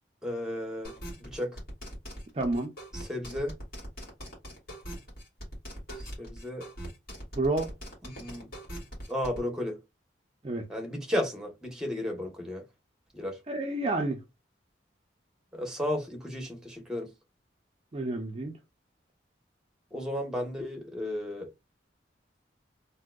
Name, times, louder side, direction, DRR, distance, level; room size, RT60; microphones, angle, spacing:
voice 1, 0.2-0.9 1.2-1.5 2.9-3.5 6.0-6.7 8.0-8.5 9.1-9.8 10.7-12.6 13.1-13.4 15.5-17.1 19.9-21.5, left 1 dB, 5° right, 0.9 m, -33 dB
sound 1, 0.8-9.4, equal, 55° left, 2.1 m, -41 dB
voice 2, 2.3-2.7 7.4-7.7 10.4-10.6 13.5-14.2 17.9-18.6, right 2 dB, 30° right, 0.5 m, -29 dB
3.6 x 2.6 x 2.2 m
head